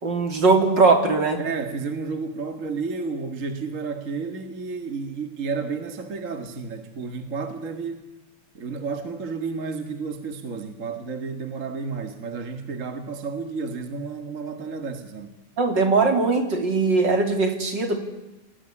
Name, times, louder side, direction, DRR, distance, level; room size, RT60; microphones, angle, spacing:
voice 1, 0.0-1.4 15.6-18.0, right 3 dB, 55° right, 6 dB, 3.8 m, -20 dB
voice 2, 1.4-8.1 8.5-15.4, right 4 dB, 40° right, 7 dB, 1.9 m, -31 dB
29.5 x 20.5 x 9.9 m, 1.0 s
omnidirectional pair, 2.4 m